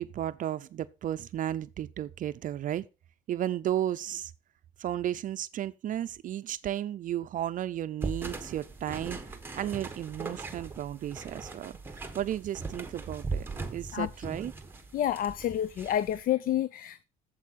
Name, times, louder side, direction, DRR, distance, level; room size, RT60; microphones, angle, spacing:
voice 1, 0.0-2.8 3.3-4.3 4.8-9.2 9.5-11.8 12.1-13.5 13.7-14.5, right 11 dB, 50° right, 0.5 m, -33 dB
sound 1, 8.0-16.2, right 3 dB, 10° right, 1.3 m, -40 dB
voice 2, 14.9-17.0, left 11 dB, 55° left, 0.5 m, -29 dB
8.3 x 7.6 x 4.1 m
cardioid pair, 110°, 17 cm